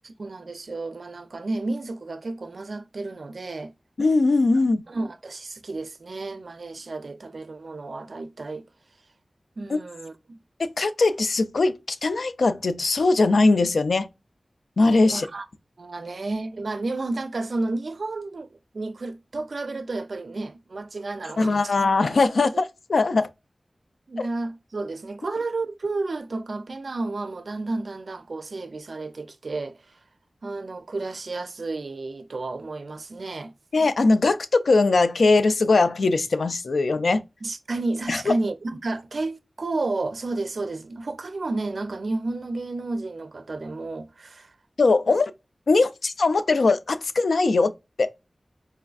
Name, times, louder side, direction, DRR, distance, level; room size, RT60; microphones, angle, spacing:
voice 1, 0.0-3.7 4.9-8.6 9.6-10.4 15.0-15.5 15.8-21.8 22.4-22.5 24.1-30.0 30.4-33.5 37.4-44.5 45.1-45.2, right 2 dB, 70° right, 0.4 m, -31 dB
voice 2, 4.0-4.8 9.7-9.8 10.6-14.1 14.8-15.3 21.4-23.3 24.2-24.3 33.7-37.2 38.1-38.3 44.8-45.3 45.7-47.7 48.0-48.1, left 3 dB, 85° left, 0.4 m, -20 dB
4.3 x 2.4 x 2.3 m
wide cardioid pair, 90°, 0 cm